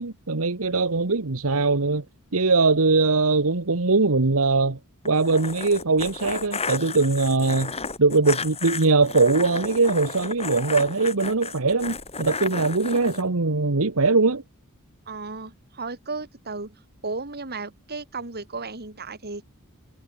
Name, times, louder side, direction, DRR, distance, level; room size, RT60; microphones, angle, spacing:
voice 1, 0.0-2.0 2.3-4.8 5.0-14.4, right 3 dB, 70° right, 1.3 m, -21 dB
sound 1, 5.0-13.2, left 4 dB, 30° left, 4.7 m, -33 dB
voice 2, 15.1-16.8 17.0-19.4, right 3 dB, 45° right, 3.2 m, -34 dB
head